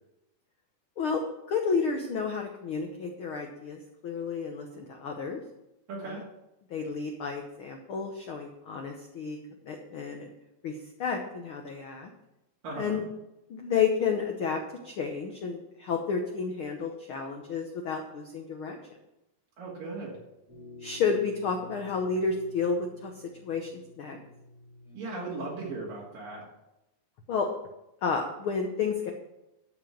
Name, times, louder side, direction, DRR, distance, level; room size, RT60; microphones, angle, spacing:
voice 1, 1.5-5.4 6.0-6.2 6.7-9.4 9.6-10.3 10.6-12.1 12.7-13.0 13.5-18.8 20.8-24.2 27.3-27.5 28.0-29.1, left 5 dB, 90° left, 3 dB, 1.1 m, -31 dB
voice 2, 5.9-6.2 12.6-13.0 19.6-20.1 24.9-26.4, right 3 dB, 80° right, -5 dB, 3.9 m, -37 dB
sound 1, 20.5-25.5, left 3 dB, 10° right, 2.4 m, -50 dB
13.0 x 5.2 x 7.3 m, 0.91 s
omnidirectional pair, 3.9 m